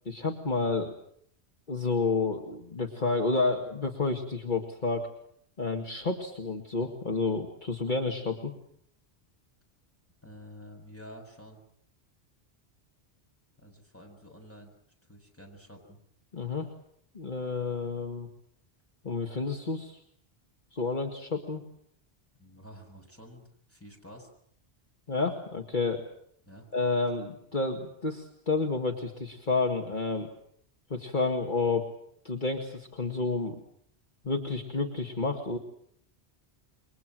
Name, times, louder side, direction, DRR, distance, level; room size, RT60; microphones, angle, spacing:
voice 1, 0.1-0.9 1.7-5.1 5.6-8.5 16.3-16.7 17.1-18.3 19.0-20.0 20.7-21.6 25.1-26.0 26.7-30.3 30.9-31.9 32.2-33.6 34.2-35.6, left 3 dB, 45° left, 2 dB, 2.2 m, -30 dB
voice 2, 10.2-11.6 13.6-14.7 15.1-16.0 22.4-24.3 26.5-26.7, equal, 10° left, 1 dB, 6.8 m, -49 dB
28.5 x 23.5 x 7.7 m, 0.67 s
omnidirectional pair, 1.1 m